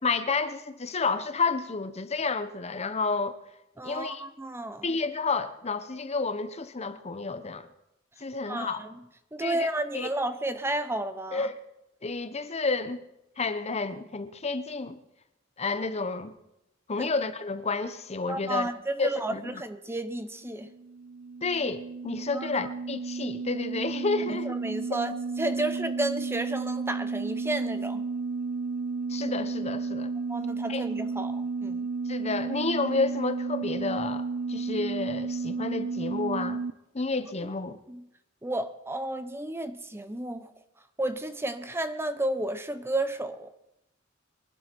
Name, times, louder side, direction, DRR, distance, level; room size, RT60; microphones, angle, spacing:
voice 1, 0.0-3.4 3.8-4.2 4.8-7.7 8.2-8.8 9.4-9.7 9.9-10.1 11.3-11.5 12.0-13.0 13.4-15.0 15.6-16.3 16.9-18.7 19.0-19.6 21.4-24.6 29.1-30.1 30.7-30.8 32.1-36.6 36.9-37.8, left 4 dB, 35° left, 0.9 m, -30 dB
voice 2, 3.8-4.9 8.5-8.9 9.3-11.5 17.0-17.1 18.3-20.7 22.3-22.7 24.3-28.0 30.3-31.9 37.9-38.0 38.4-40.5 41.0-43.5, right 1 dB, 10° right, 0.8 m, -32 dB
sound 1, 20.5-36.7, right 4 dB, 65° right, 0.5 m, -32 dB
23.0 x 12.0 x 4.6 m
head